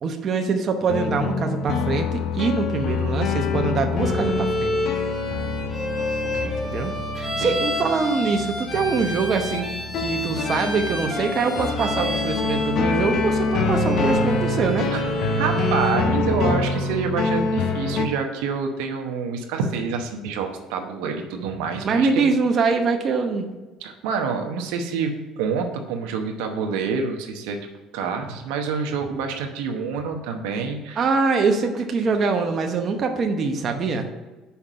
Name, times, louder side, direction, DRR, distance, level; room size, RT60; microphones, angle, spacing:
voice 1, 0.0-4.7 6.4-9.7 10.0-14.9 21.8-23.5 31.0-34.1, right 4 dB, 45° right, 4 dB, 0.8 m, -24 dB
sound 1, 0.9-18.1, left 3 dB, 60° left, 0.7 m, -26 dB
Bowed string instrument, 4.0-16.1, left 1 dB, 20° left, 2.2 m, -30 dB
voice 2, 6.2-6.5 7.4-7.5 14.9-15.0 15.3-22.3 23.8-27.6 27.9-31.1, right 5 dB, 85° right, 4 dB, 0.9 m, -27 dB
5.8 x 5.1 x 5.6 m, 1.2 s
supercardioid pair, 95°, 0 cm